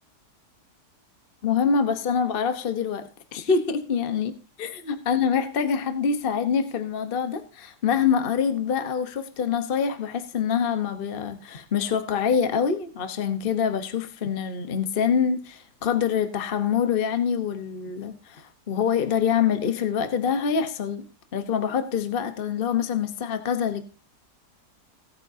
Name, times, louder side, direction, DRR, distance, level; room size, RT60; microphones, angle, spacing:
voice 1, 1.4-4.3 4.6-21.0 21.3-23.8, left 7 dB, 40° left, 1.1 m, -25 dB
17.5 x 8.9 x 2.7 m
omnidirectional pair, 1.8 m